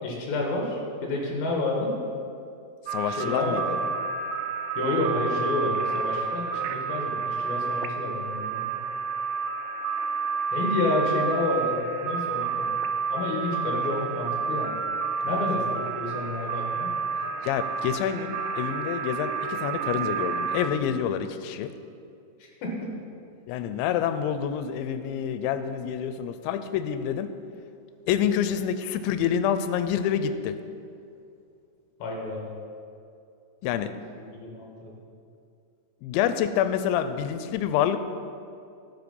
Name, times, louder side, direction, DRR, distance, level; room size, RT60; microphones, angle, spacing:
voice 1, 0.0-2.0 3.0-3.6 4.8-8.8 10.5-12.7 13.1-14.7 15.2-16.9 22.6-23.0 32.0-32.5 34.2-34.9, left 2 dB, 65° left, -1 dB, 3.0 m, -29 dB
voice 2, 2.9-3.8 15.3-15.4 17.4-21.7 23.5-27.3 28.1-30.5 33.6-33.9 36.0-38.0, left 9 dB, 90° left, 10 dB, 2.9 m, -27 dB
sound 1, 2.9-20.7, right 5 dB, 85° right, 2.8 m, -30 dB
12.0 x 6.3 x 5.3 m, 2.5 s
omnidirectional pair, 5.1 m